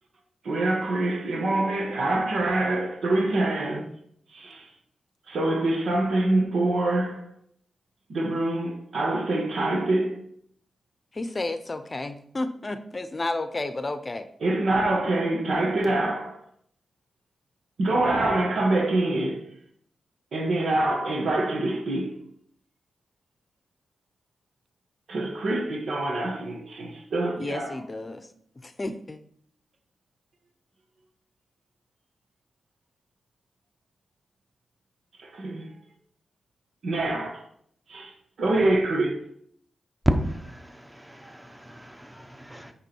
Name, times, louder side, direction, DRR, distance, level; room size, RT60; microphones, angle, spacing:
voice 1, 0.4-3.9 4.3-4.7 5.3-7.3 8.1-10.2 14.4-16.4 17.8-19.4 20.3-22.2 25.1-27.7 35.2-35.7 36.8-37.4 37.9-38.1 38.4-39.2, right 2 dB, 75° right, 1.5 m, -25 dB
voice 2, 11.1-14.3 16.0-16.1 27.4-28.3 28.6-29.2, left 2 dB, 35° left, 0.7 m, -32 dB
voice 3, 40.0-42.7, equal, 10° right, 1.0 m, -30 dB
9.4 x 3.7 x 4.6 m
cardioid pair, 55°, 0 cm